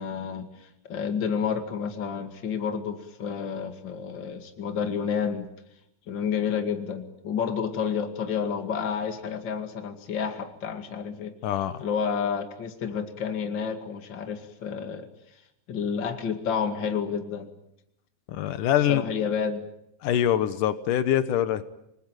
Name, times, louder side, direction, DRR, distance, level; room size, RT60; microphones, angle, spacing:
voice 1, 0.0-5.5 6.1-11.4 11.8-15.1 15.7-17.5 18.9-19.7, left 6 dB, 40° left, 7 dB, 2.6 m, -30 dB
voice 2, 11.4-11.9 18.3-19.1 20.0-21.6, left 11 dB, 85° left, 13 dB, 2.7 m, -24 dB
28.0 x 20.5 x 9.1 m, 0.80 s
omnidirectional pair, 3.6 m